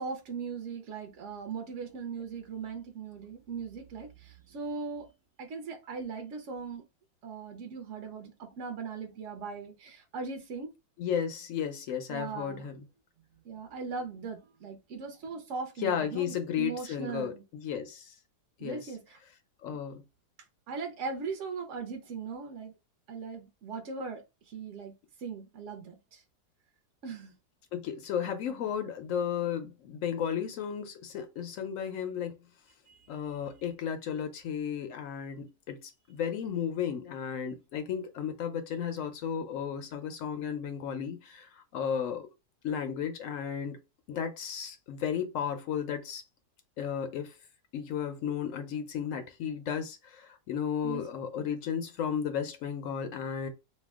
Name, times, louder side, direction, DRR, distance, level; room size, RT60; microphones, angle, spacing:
voice 1, 0.0-5.1 5.4-6.8 7.2-10.7 12.1-12.7 13.4-17.4 18.6-19.2 19.7-19.8 20.7-22.7 23.1-24.2 24.5-24.9 25.2-26.2 27.0-27.3 28.5-28.6 32.9-33.0 50.8-51.0 51.4-51.5, right 5 dB, 65° right, 0.7 m, -39 dB
voice 2, 11.0-12.8 15.8-18.1 18.6-18.9 19.6-20.0 27.7-32.4 33.1-42.3 42.6-43.8 44.1-46.2 46.8-47.4 47.7-53.5, left 8 dB, 75° left, 0.7 m, -34 dB
2.8 x 2.1 x 3.4 m
omnidirectional pair, 1.9 m